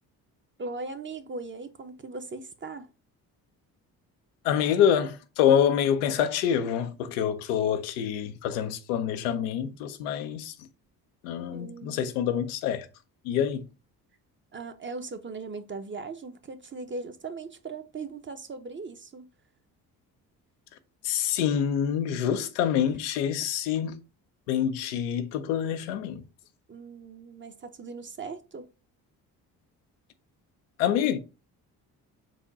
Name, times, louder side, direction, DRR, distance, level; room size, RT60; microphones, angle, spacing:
voice 1, 0.6-2.9 11.5-12.0 14.5-19.3 26.7-28.7, right 3 dB, 25° right, 0.7 m, -39 dB
voice 2, 4.4-10.5 11.2-12.9 13.2-13.6 21.0-24.0 24.5-26.2 30.8-31.2, left 9 dB, 90° left, 0.6 m, -26 dB
4.9 x 2.2 x 3.9 m
hypercardioid pair, 50°, 44 cm